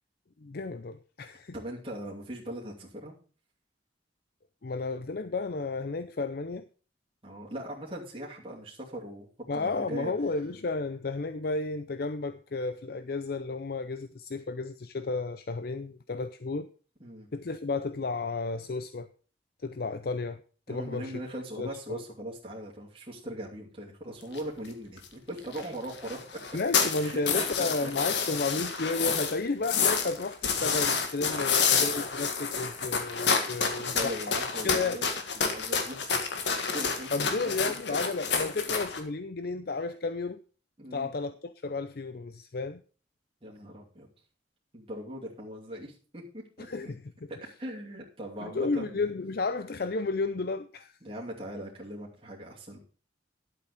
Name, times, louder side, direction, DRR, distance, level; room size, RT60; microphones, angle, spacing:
voice 1, 0.4-1.5 4.6-6.6 9.5-16.7 17.3-19.1 19.6-20.4 20.7-21.2 21.6-22.0 26.5-34.3 34.6-35.0 37.1-40.4 40.9-42.8 46.6-47.3 48.4-50.9, left 3 dB, 55° left, 0.6 m, -32 dB
voice 2, 1.5-3.1 7.2-9.3 9.5-10.1 17.0-17.3 20.7-26.2 26.5-26.6 26.9-27.9 29.0-29.1 31.3-31.4 33.8-35.0 35.4-36.1 36.7-37.5 37.9-38.0 40.8-41.1 43.4-44.1 44.7-46.9 47.3-49.1 51.0-52.8, right 1 dB, 30° right, 2.7 m, -40 dB
sound 1, 24.3-24.4 24.6-24.7 25.0-25.1 25.4-25.6 25.9-29.3 29.6-39.0, left 5 dB, 70° left, 1.9 m, -29 dB
11.0 x 8.3 x 5.1 m
head